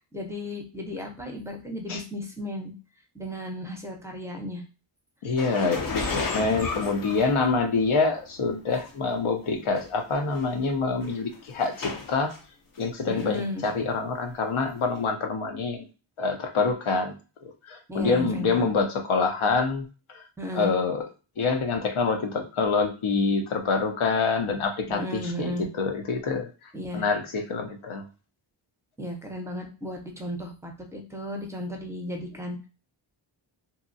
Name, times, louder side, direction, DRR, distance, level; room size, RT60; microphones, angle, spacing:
voice 1, 0.1-2.7 3.1-4.6 13.1-13.6 17.9-18.6 20.4-20.7 24.9-25.7 26.7-27.0 29.0-32.7, left 1 dB, 5° right, 2 dB, 0.7 m, -34 dB
voice 2, 5.2-12.3 12.8-15.9 16.2-17.1 17.4-20.2 20.5-21.0 21.4-26.5 26.9-28.0, left 4 dB, 75° left, 4 dB, 0.8 m, -26 dB
sound 1, 5.4-8.0 8.8-8.9 9.8-9.9 10.1-10.4 11.0-12.4 12.8-13.4 13.6-13.7 15.0-15.1, left 4 dB, 40° left, 0.7 m, -33 dB
2.8 x 2.3 x 2.6 m, 0.33 s
wide cardioid pair, 75°, 50 cm